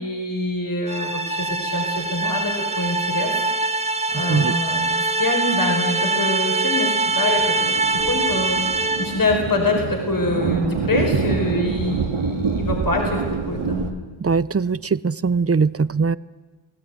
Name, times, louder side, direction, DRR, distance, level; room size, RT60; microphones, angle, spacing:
voice 1, 0.0-3.5 4.1-7.4 7.9-13.9, left 2 dB, 40° left, 1 dB, 5.1 m, -25 dB
sound 1, 0.9-9.3, right 3 dB, 15° right, 1.7 m, -23 dB
Thunder, 7.0-13.9, right 5 dB, 80° right, 2.3 m, -26 dB
voice 2, 14.2-16.2, right 5 dB, 30° right, 18 dB, 0.7 m, -21 dB
27.0 x 18.5 x 9.4 m, 1.3 s
wide cardioid pair, 85°, 49 cm